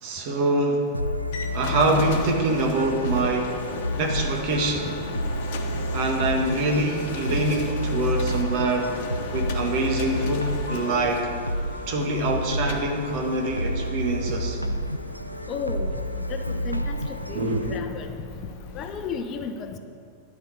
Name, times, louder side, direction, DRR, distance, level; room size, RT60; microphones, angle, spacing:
voice 1, 0.0-0.9 1.5-3.5 4.0-4.9 5.9-8.9 9.3-11.3 11.9-14.6 17.3-17.9, right 2 dB, 45° right, 2 dB, 1.6 m, -25 dB
sound 1, 0.9-17.8, equal, 90° right, 0.4 m, -30 dB
sound 2, 1.3-19.2, left 4 dB, 50° left, 1.1 m, -37 dB
voice 2, 15.5-15.9 16.3-16.4 16.7-17.0 17.3-17.4 17.7-18.1 18.8-19.8, left 6 dB, 35° left, 6 dB, 0.8 m, -32 dB
11.5 x 5.5 x 8.2 m, 2.2 s
figure-of-eight pair, 90°, 0 cm